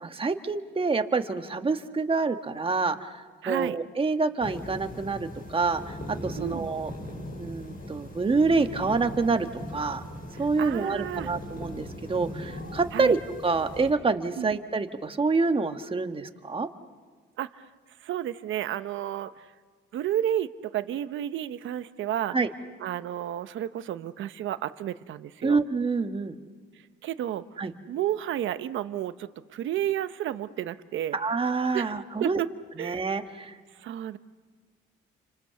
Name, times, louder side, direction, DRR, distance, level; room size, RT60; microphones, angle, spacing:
voice 1, 0.0-6.0 6.2-6.9 7.4-9.5 9.7-10.0 10.4-16.7 22.3-22.5 25.4-26.3 27.6-27.7 31.1-32.4 32.8-33.6, right 4 dB, 25° right, 7 dB, 1.6 m, -27 dB
voice 2, 3.4-3.8 6.4-6.7 10.3-11.3 12.9-13.2 14.4-14.5 17.4-17.7 18.0-19.5 19.9-22.4 22.8-25.6 26.7-31.2 31.7-31.9 32.2-32.5 32.8-33.1 33.7-34.2, right 11 dB, 75° right, 12 dB, 0.9 m, -32 dB
sound 1, 4.4-13.9, left 1 dB, 45° left, 7.6 m, -39 dB
30.0 x 26.0 x 7.0 m, 1.5 s
cardioid pair, 90°, 20 cm